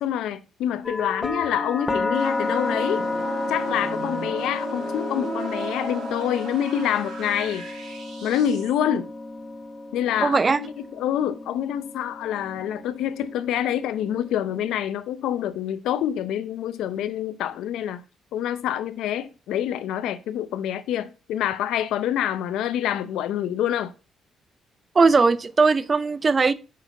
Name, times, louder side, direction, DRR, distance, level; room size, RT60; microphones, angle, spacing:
voice 1, 0.0-3.1 3.5-7.7 8.2-9.1 9.9-18.0 18.3-23.9, left 10 dB, 85° left, 0.7 m, -27 dB
sound 1, 0.8-14.7, left 3 dB, 25° left, 0.7 m, -32 dB
sound 2, 2.1-8.8, right 3 dB, 75° right, 3.3 m, -36 dB
voice 2, 10.2-10.6 24.9-26.5, right 4 dB, 30° right, 0.6 m, -19 dB
6.3 x 4.6 x 5.4 m
cardioid pair, 90°, 0 cm